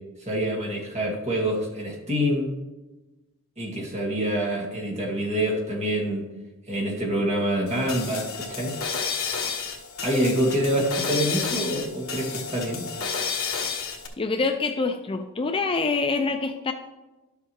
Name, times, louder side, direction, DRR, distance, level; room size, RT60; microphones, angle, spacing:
voice 1, 0.2-2.5 3.6-6.3 6.7-8.7 10.0-12.9, equal, 30° right, -1 dB, 2.0 m, -26 dB
sound 1, 7.7-14.1, left 6 dB, 70° left, 1.3 m, -31 dB
voice 2, 14.2-16.7, left 4 dB, 25° left, 7 dB, 0.4 m, -25 dB
11.5 x 7.1 x 3.1 m, 1.1 s
head